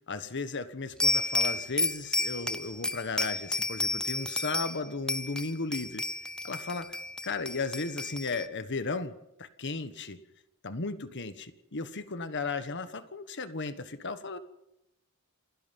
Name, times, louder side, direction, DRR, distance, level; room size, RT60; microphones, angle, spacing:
voice 1, 0.1-6.0 6.4-9.1 9.4-10.2 10.6-14.4, left 3 dB, 55° left, 11 dB, 1.4 m, -35 dB
sound 1, 1.0-4.8 5.1-8.5, left 2 dB, 5° left, 0.7 m, -31 dB
28.0 x 18.0 x 5.4 m, 0.88 s
head